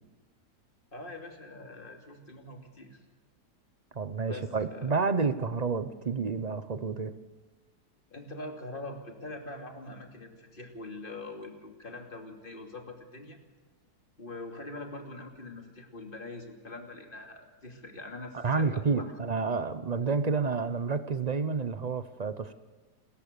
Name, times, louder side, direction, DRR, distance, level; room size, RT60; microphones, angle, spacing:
voice 1, 0.9-3.0 4.3-4.9 8.1-13.4 14.2-19.2, left 2 dB, 30° left, 3 dB, 2.8 m, -43 dB
voice 2, 3.9-7.1 18.3-22.5, right 4 dB, 45° right, 12 dB, 0.5 m, -29 dB
28.5 x 14.5 x 6.8 m, 1.3 s
omnidirectional pair, 1.9 m